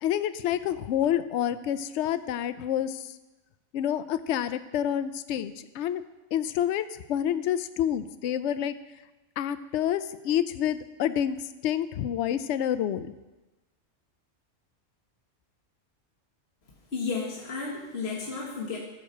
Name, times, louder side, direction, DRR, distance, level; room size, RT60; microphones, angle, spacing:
voice 1, 0.0-3.0 3.7-6.0 6.3-8.7 9.4-13.1, left 10 dB, 70° left, 13 dB, 0.8 m, -28 dB
voice 2, 16.9-18.8, left 4 dB, 55° left, -3 dB, 1.7 m, -32 dB
14.0 x 4.8 x 6.4 m, 1.1 s
omnidirectional pair, 1.3 m